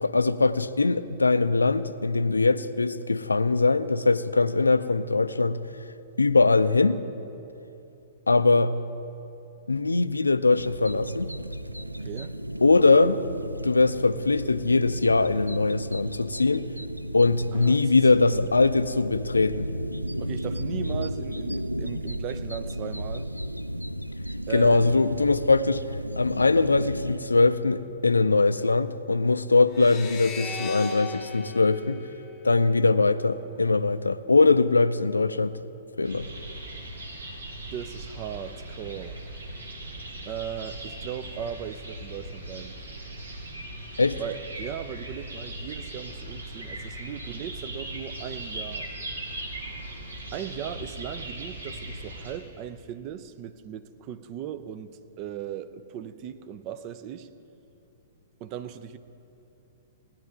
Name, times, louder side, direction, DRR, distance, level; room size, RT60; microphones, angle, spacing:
voice 1, 0.0-5.6 6.2-7.0 8.3-8.7 9.7-11.3 12.6-13.2 13.6-16.7 17.1-19.7 24.5-25.8 26.2-32.0 32.4-35.6 36.0-36.3 44.0-44.2, left 3 dB, 75° left, 14 dB, 0.4 m, -21 dB
sound 1, 10.5-27.2, equal, 90° right, 0.3 m, -34 dB
voice 2, 12.0-12.3 12.7-13.1 17.5-18.5 20.2-23.3 24.5-24.9 33.1-33.2 33.5-33.7 37.7-39.2 40.3-42.8 44.2-48.9 50.3-57.3 58.4-59.0, right 9 dB, 35° right, 11 dB, 0.5 m, -38 dB
sound 2, 29.7-33.0, left 4 dB, 25° left, 0.9 m, -37 dB
sound 3, 36.0-52.4, right 1 dB, 70° right, 1.8 m, -39 dB
17.5 x 10.0 x 3.7 m, 2.9 s
figure-of-eight pair, 110°, 0 cm